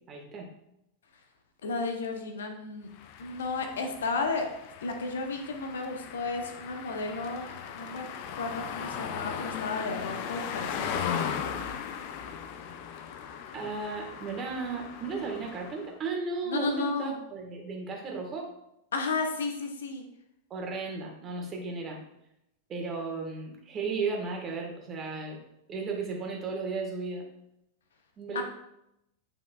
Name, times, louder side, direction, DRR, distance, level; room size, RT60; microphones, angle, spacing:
voice 1, 0.1-0.5 13.5-18.5 20.5-22.0 22.7-25.4 25.7-27.2 28.2-28.4, right 4 dB, 30° right, 1 dB, 1.6 m, -35 dB
voice 2, 1.6-2.9 3.2-4.5 4.8-7.4 7.7-8.0 8.4-11.8 16.5-17.1 18.9-20.0 28.3-28.4, left 3 dB, 65° left, 4 dB, 0.9 m, -33 dB
sound 1, 2.9-15.9, left 8 dB, 45° left, 0.6 m, -38 dB
8.8 x 5.9 x 2.4 m, 0.82 s
figure-of-eight pair, 90°, 0 cm